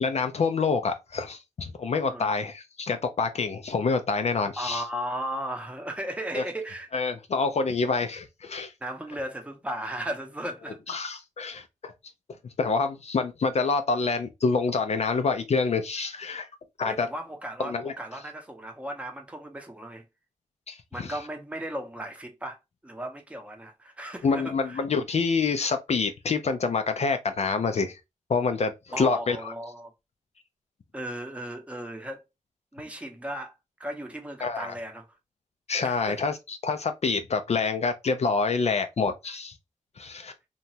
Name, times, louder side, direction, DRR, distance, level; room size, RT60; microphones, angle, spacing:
voice 1, 0.0-4.8 6.4-6.5 6.9-8.7 10.9-11.9 12.6-16.5 16.8-17.1 17.6-17.9 20.7-21.1 24.2-28.0 28.3-29.4 34.4-34.7 35.7-39.5 40.0-40.3, left 4 dB, 55° left, 0.4 m, -27 dB
voice 2, 4.6-6.9 8.8-11.0 16.8-20.0 20.9-22.6 22.8-24.8 28.9-29.9 30.9-32.2 32.7-35.1 35.8-36.2, right 1 dB, 10° right, 0.7 m, -36 dB
2.9 x 2.2 x 2.7 m
cardioid pair, 65°, 13 cm